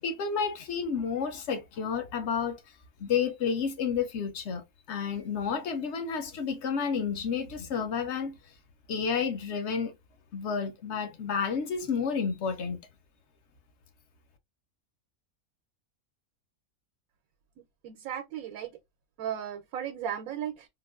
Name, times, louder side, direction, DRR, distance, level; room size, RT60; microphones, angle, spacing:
voice 1, 0.0-2.6 3.0-8.4 8.9-9.9 10.3-12.8, left 6 dB, 60° left, 0.9 m, -30 dB
voice 2, 17.8-18.7 19.2-20.7, right 9 dB, 85° right, 1.1 m, -35 dB
3.7 x 2.5 x 2.3 m
omnidirectional pair, 1.4 m